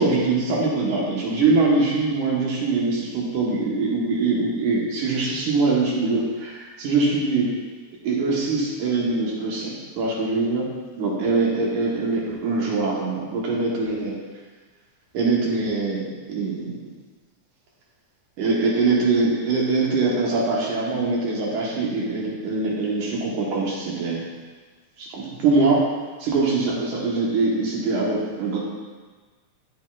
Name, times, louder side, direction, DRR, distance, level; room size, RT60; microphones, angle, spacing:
voice 1, 0.0-7.5 8.0-10.7 11.0-14.2 15.1-16.8 18.4-24.3 25.0-25.8 26.2-28.6, right 3 dB, 80° right, -4 dB, 2.7 m, -23 dB
9.5 x 6.9 x 2.4 m, 1.4 s
omnidirectional pair, 3.5 m